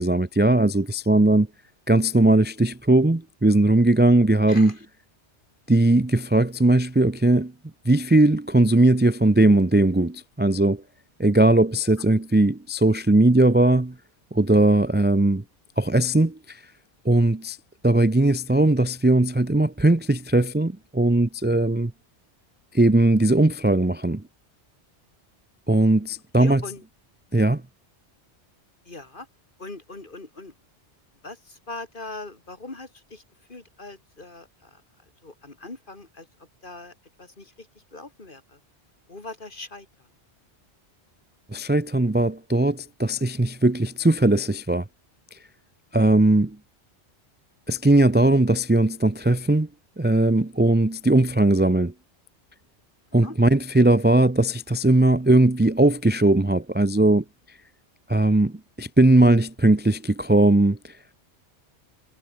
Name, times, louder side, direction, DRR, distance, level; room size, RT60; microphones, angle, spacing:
voice 1, 0.0-1.5 1.9-4.7 5.7-7.5 7.8-10.8 11.2-13.9 14.3-15.4 15.8-16.6 17.0-17.6 17.8-21.9 22.7-24.2 25.7-26.6 27.3-27.6 41.5-44.8 45.9-46.6 47.7-49.7 50.0-51.9 53.1-57.2 58.1-60.9, right 2 dB, 10° right, 0.6 m, -19 dB
voice 2, 26.4-26.8 28.9-29.3 29.6-30.5 31.2-33.2 33.5-34.8 35.2-36.3 36.6-36.9 37.2-37.7 37.9-38.6 39.1-39.9 53.2-53.4, left 2 dB, 50° left, 3.0 m, -40 dB
omnidirectional pair, 1.2 m